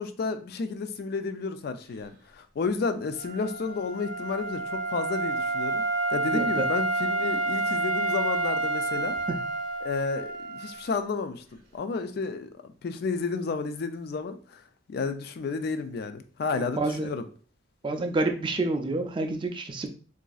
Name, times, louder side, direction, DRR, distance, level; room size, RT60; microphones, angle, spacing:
voice 1, 0.0-5.8 6.1-9.2 9.8-11.4 11.7-12.5 12.8-14.6 14.9-17.3, left 4 dB, 55° left, 9 dB, 0.3 m, -31 dB
Wind instrument woodwind instrument, 3.1-10.9, right 2 dB, 45° right, 0.8 m, -29 dB
voice 2, 6.3-6.7 9.3-9.4 16.5-17.1 17.8-19.9, right 2 dB, 25° right, 5 dB, 0.4 m, -28 dB
3.9 x 2.5 x 2.3 m, 0.41 s
head